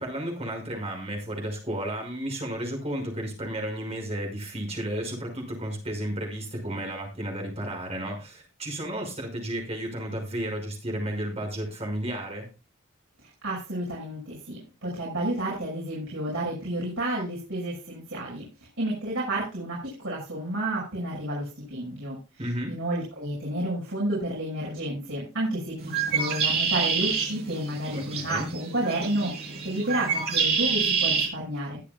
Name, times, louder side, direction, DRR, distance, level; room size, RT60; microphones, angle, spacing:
voice 1, 0.0-12.5 22.4-22.7 27.9-28.5, right 1 dB, 30° right, 1 dB, 5.7 m, -33 dB
voice 2, 13.4-18.5 18.8-22.2 22.7-31.8, right 1 dB, 70° right, -5 dB, 6.3 m, -31 dB
Bird, 25.8-31.3, right 5 dB, 50° right, 7.5 m, -27 dB
21.5 x 8.6 x 2.3 m, 0.30 s
head